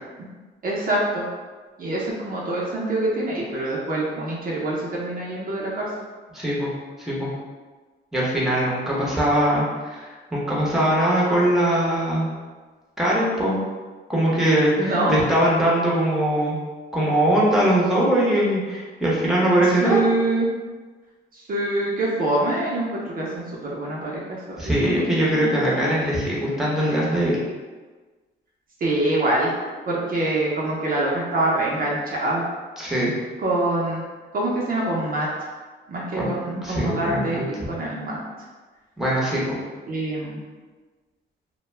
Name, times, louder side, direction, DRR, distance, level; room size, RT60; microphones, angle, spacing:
voice 1, 0.6-1.2 1.8-5.9 14.8-15.1 19.8-20.5 21.3-25.0 25.4-25.5 28.8-29.5 29.9-32.4 33.4-34.0 34.3-35.3 35.9-38.2 39.9-40.4, right 2 dB, 45° right, -5 dB, 0.6 m, -25 dB
voice 2, 6.3-6.7 7.0-7.3 8.1-12.3 13.0-13.6 14.1-16.6 16.9-20.0 24.6-27.4 32.8-33.1 36.1-37.4 39.0-39.6, right 1 dB, ahead, -6 dB, 0.8 m, -21 dB
2.2 x 2.2 x 3.2 m, 1.3 s
cardioid pair, 90°, 20 cm